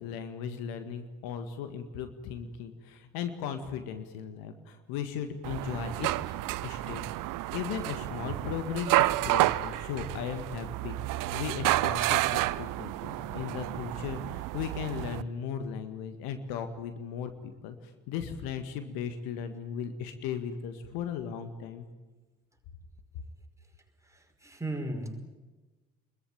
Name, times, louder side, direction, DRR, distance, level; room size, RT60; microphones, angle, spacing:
voice 1, 0.0-6.3 6.6-7.0 7.5-21.9, left 7 dB, 60° left, 9 dB, 1.9 m, -37 dB
sound 1, 5.4-15.2, right 17 dB, 50° right, 0.9 m, -30 dB
voice 2, 24.1-25.2, right 1 dB, 5° right, 2 dB, 5.5 m, -36 dB
25.0 x 22.0 x 9.0 m, 1.2 s
figure-of-eight pair, 50°, 40 cm